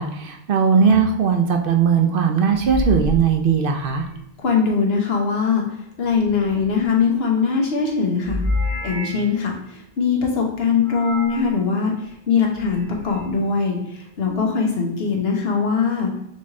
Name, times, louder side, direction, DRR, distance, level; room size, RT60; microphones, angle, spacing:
voice 1, 0.0-4.1, right 6 dB, 65° right, 4 dB, 0.7 m, -18 dB
sound 1, 0.8-1.1 2.5-4.2 6.1-7.2 8.2-9.4 10.8-11.5 12.5-13.3, left 1 dB, 35° left, 1.2 m, -29 dB
voice 2, 4.4-5.6 6.0-8.4 8.8-9.5 10.0-11.9 12.3-13.8 14.2-16.1, left 5 dB, 70° left, 1 dB, 1.1 m, -21 dB
4.1 x 3.2 x 3.6 m, 0.78 s
omnidirectional pair, 1.1 m